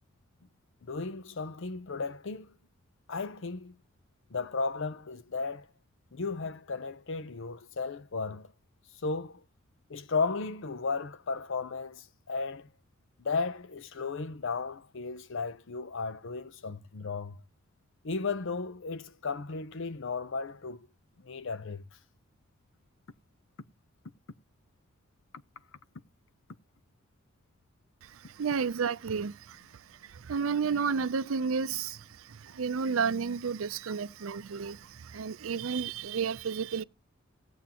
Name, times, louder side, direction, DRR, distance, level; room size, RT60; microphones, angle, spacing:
voice 1, 0.8-2.5 3.1-3.8 4.3-5.7 6.1-8.5 9.0-9.4 9.9-12.7 13.2-17.4 18.0-20.9 21.2-21.8, left 4 dB, 65° left, 0.7 m, -35 dB
voice 2, 28.4-29.6 30.3-32.0 32.4-36.8, right 6 dB, 80° right, 0.5 m, -31 dB
18.0 x 7.2 x 2.9 m
head